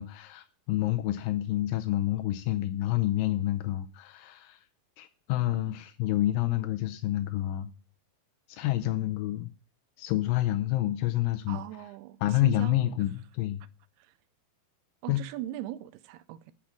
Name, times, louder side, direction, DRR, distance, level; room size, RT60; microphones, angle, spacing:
voice 1, 0.0-4.6 5.0-7.7 8.5-9.5 10.0-11.6 12.2-13.6 15.1-15.2, left 14 dB, 80° left, 2.1 m, -28 dB
voice 2, 11.5-12.8 14.0-14.1 15.0-16.5, right 14 dB, 85° right, 2.7 m, -39 dB
10.0 x 6.3 x 7.2 m
omnidirectional pair, 4.5 m